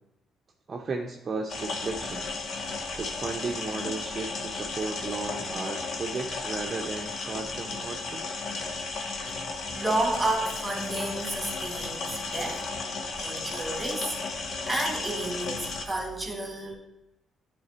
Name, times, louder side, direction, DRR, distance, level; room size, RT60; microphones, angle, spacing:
voice 1, 0.7-2.3 2.9-8.4, right 3 dB, 40° right, 1 dB, 0.6 m, -35 dB
sound 1, 1.5-15.8, left 3 dB, 60° left, 0.9 m, -34 dB
voice 2, 9.7-12.8 13.1-16.7, right 2 dB, 15° right, 1 dB, 1.8 m, -31 dB
9.6 x 3.4 x 4.1 m, 0.92 s
cardioid pair, 90°, 0 cm